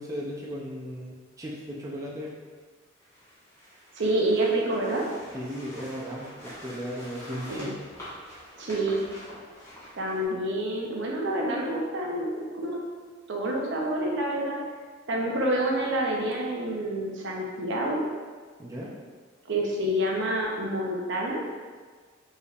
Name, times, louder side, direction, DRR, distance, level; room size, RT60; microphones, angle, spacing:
voice 1, 0.0-2.3 5.3-7.7 18.6-18.9, equal, 15° right, -5 dB, 0.5 m, -36 dB
sound 1, 3.0-10.2, equal, 15° left, 1.4 m, -45 dB
voice 2, 4.0-5.0 7.5-7.7 8.6-9.0 9.9-12.8 13.3-14.6 15.1-18.1 19.4-21.4, right 1 dB, 65° right, -1 dB, 0.7 m, -28 dB
5.3 x 3.3 x 2.4 m, 1.5 s
head